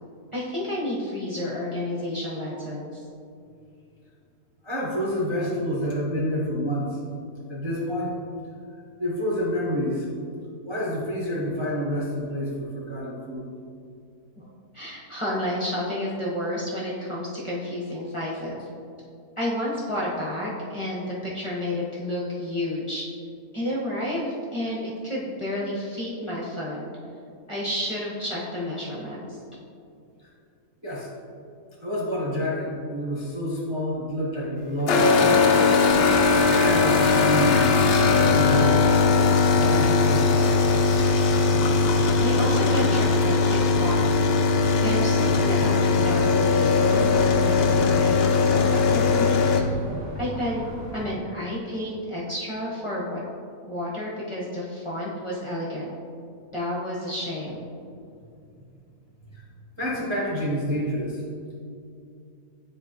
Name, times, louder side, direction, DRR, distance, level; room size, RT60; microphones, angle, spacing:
voice 1, 0.3-3.0 14.4-18.7 19.4-23.1 23.5-26.8 27.5-29.4 42.2-44.5 44.8-48.2 48.5-49.5 50.2-50.7 50.9-53.2 53.7-55.9 56.5-57.7, left 1 dB, 20° left, -7 dB, 1.0 m, -30 dB
voice 2, 4.6-7.0 7.5-8.1 9.0-10.1 10.6-13.5 30.2-30.3 30.8-31.1 31.8-35.5 36.3-38.8 39.6-40.5 59.3-59.4 59.8-61.2, equal, 20° right, -5 dB, 0.8 m, -28 dB
sound 1, 34.9-49.6, left 4 dB, 75° left, 0.5 m, -20 dB
sound 2, 35.9-51.0, equal, 60° right, 2.0 m, -36 dB
9.8 x 4.1 x 3.0 m, 2.5 s
omnidirectional pair, 1.6 m